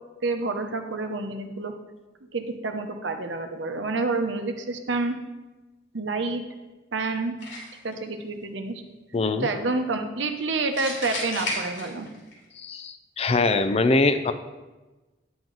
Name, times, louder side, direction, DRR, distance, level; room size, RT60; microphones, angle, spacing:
voice 1, 0.2-1.7 2.3-5.2 5.9-6.4 6.9-7.3 7.8-8.8 9.4-12.1, right 3 dB, 90° right, 6 dB, 0.8 m, -28 dB
sound 1, 7.4-7.9 10.7-12.3, left 2 dB, 90° left, 2.7 m, -32 dB
voice 2, 9.1-9.5 12.6-14.3, left 3 dB, 35° left, 10 dB, 0.4 m, -23 dB
9.2 x 6.0 x 3.9 m, 1.2 s
head